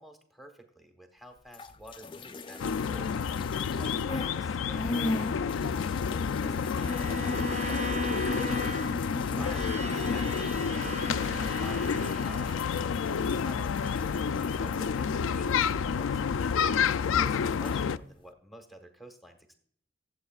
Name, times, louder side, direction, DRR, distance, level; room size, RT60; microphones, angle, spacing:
voice 1, 0.0-3.1 3.7-5.7 6.3-8.1 9.2-12.6 13.1-16.4 17.0-19.5, equal, ahead, 5 dB, 1.2 m, -50 dB
sound 1, 1.5-4.4 4.7-16.6 16.9-17.8, left 2 dB, 25° left, 0.5 m, -39 dB
sound 2, 2.6-18.0, left 6 dB, 80° left, 0.4 m, -29 dB
Bowed string instrument, 6.8-13.0, right 1 dB, 35° right, 0.7 m, -39 dB
23.0 x 7.9 x 2.4 m, 0.62 s
head